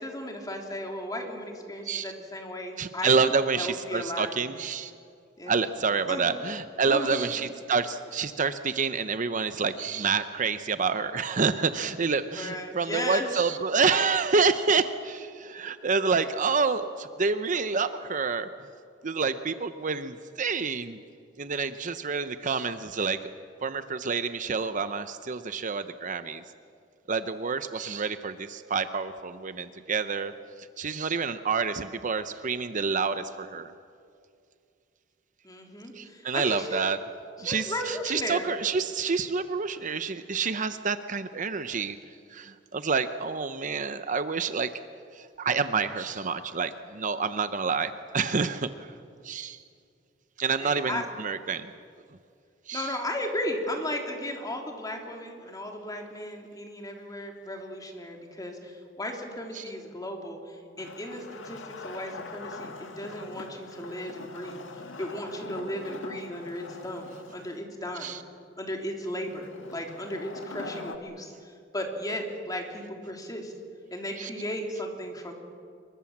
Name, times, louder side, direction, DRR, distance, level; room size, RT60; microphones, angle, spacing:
voice 1, 0.0-4.3 5.4-5.5 6.1-6.3 6.9-7.3 12.3-13.3 35.4-36.8 37.4-38.5 50.6-51.1 52.7-64.6 65.0-68.1 68.6-71.3 71.7-73.5 73.9-75.3, left 1 dB, 20° left, 2 dB, 3.3 m, -35 dB
voice 2, 2.8-4.9 5.5-18.5 19.0-21.0 21.4-23.2 23.6-26.4 27.1-30.3 30.6-33.7 35.9-37.0 37.4-42.0 42.3-44.7 45.1-48.9 49.2-49.6 50.4-51.7 52.7-53.0 59.5-59.6 68.0-68.2 74.2-74.3, right 5 dB, 40° right, 11 dB, 0.7 m, -28 dB
Wood, 60.8-67.6 69.2-71.0, left 3 dB, 85° left, 1.8 m, -43 dB
25.5 x 23.0 x 7.4 m, 2.4 s
head